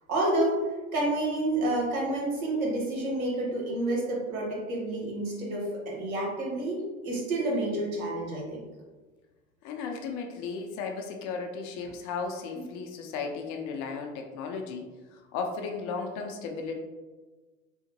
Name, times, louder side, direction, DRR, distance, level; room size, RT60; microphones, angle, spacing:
voice 1, 0.1-0.6 0.9-8.6, right 1 dB, 75° right, -3 dB, 1.4 m, -29 dB
voice 2, 9.6-14.8 15.1-16.7, left 5 dB, 45° left, 3 dB, 0.6 m, -35 dB
3.8 x 2.1 x 2.9 m, 1.3 s
hypercardioid pair, 90°, 42 cm